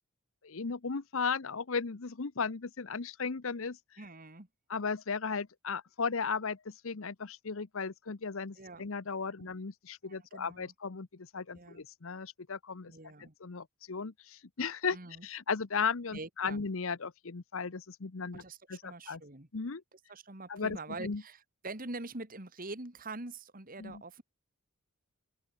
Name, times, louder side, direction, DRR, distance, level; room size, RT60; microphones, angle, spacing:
voice 1, 0.4-3.8 4.7-12.9 13.2-15.0 15.2-18.4 18.7-19.2 19.5-19.8 20.5-21.2 23.8-24.0, left 5 dB, 65° left, 0.8 m, -36 dB
voice 2, 4.0-4.5 8.6-8.8 9.4-9.5 10.0-10.7 11.5-11.8 12.9-13.3 14.9-15.3 16.1-16.6 18.3-19.5 19.9-24.2, right 2 dB, 40° right, 2.7 m, -45 dB
open air
head